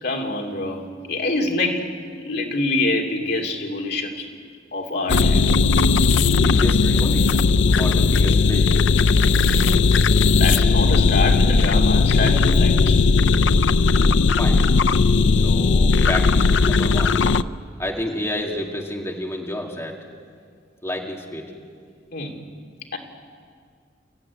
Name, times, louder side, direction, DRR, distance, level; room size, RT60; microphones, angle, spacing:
voice 1, 0.0-4.3 4.7-5.4 9.2-9.7 10.3-13.0 22.1-22.4 22.9-23.0, left 2 dB, 60° left, 2 dB, 2.9 m, -26 dB
sound 1, 5.1-17.4, left 4 dB, 85° left, 0.5 m, -17 dB
voice 2, 6.2-8.7 14.4-14.7 15.3-17.2 17.8-20.0 20.8-21.5, left 1 dB, 15° left, 0 dB, 2.0 m, -30 dB
29.5 x 15.5 x 9.6 m, 2.1 s
head